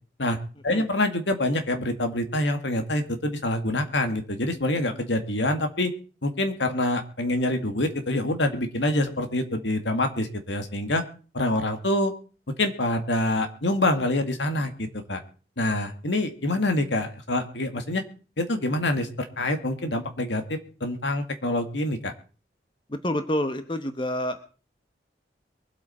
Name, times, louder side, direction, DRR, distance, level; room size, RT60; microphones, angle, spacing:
voice 1, 0.6-5.9 6.2-11.0 11.3-12.1 12.6-15.2 15.6-18.0 18.4-22.1, left 1 dB, 85° left, 6 dB, 2.1 m, -26 dB
voice 2, 22.9-24.6, left 1 dB, 25° left, 8 dB, 1.1 m, -28 dB
23.0 x 8.4 x 4.3 m, 0.37 s
head